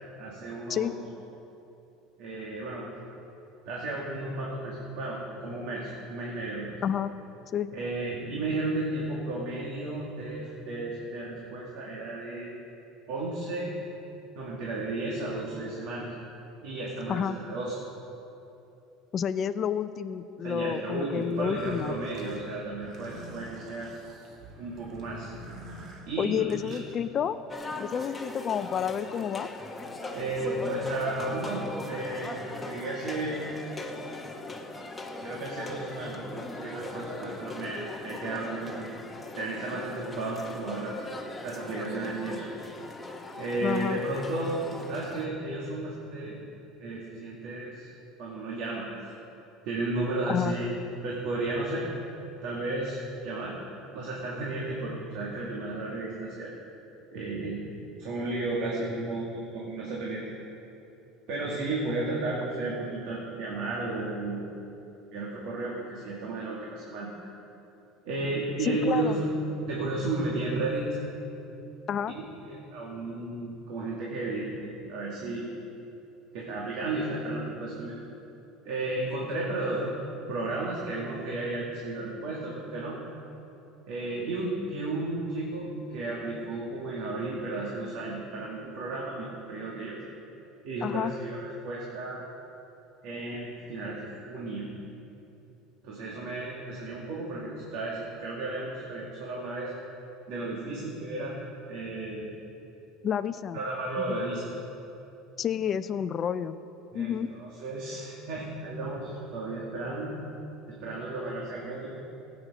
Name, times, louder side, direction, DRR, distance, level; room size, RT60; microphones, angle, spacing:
voice 1, 0.2-1.0 2.2-2.8 3.6-6.7 7.7-12.5 13.1-13.7 14.4-16.1 16.6-17.8 20.4-23.9 24.6-25.3 26.1-26.8 30.1-33.4 35.2-38.9 39.4-41.0 41.4-42.4 43.4-46.4 46.8-47.9 48.2-48.9 49.6-50.7 51.0-51.9 52.4-53.6 53.9-56.5 57.1-60.2 61.3-64.4 65.1-67.3 68.0-69.3 69.7-70.9 72.1-75.5 76.3-77.9 78.6-79.9 80.3-83.0 83.9-90.0 90.6-91.4 91.6-92.2 93.0-94.7 95.8-99.7 100.3-101.4 101.7-102.3 103.5-104.5 106.9-110.1 110.7-112.0, right 2 dB, 70° right, -4 dB, 2.1 m, -33 dB
voice 2, 6.8-7.1 7.5-7.7 17.1-17.4 19.1-21.9 26.2-27.4 27.8-29.5 43.6-44.0 50.3-50.5 68.6-69.2 71.9-72.1 90.8-91.1 103.0-103.6 104.1-104.2 105.4-106.6 106.9-107.3, left 8 dB, 40° left, 11 dB, 0.4 m, -29 dB
sound 1, 21.3-27.0, right 1 dB, 45° right, 2.0 m, -46 dB
sound 2, 27.5-45.3, left 2 dB, 10° left, 1.1 m, -39 dB
15.5 x 8.4 x 5.0 m, 2.9 s
supercardioid pair, 120°, 0 cm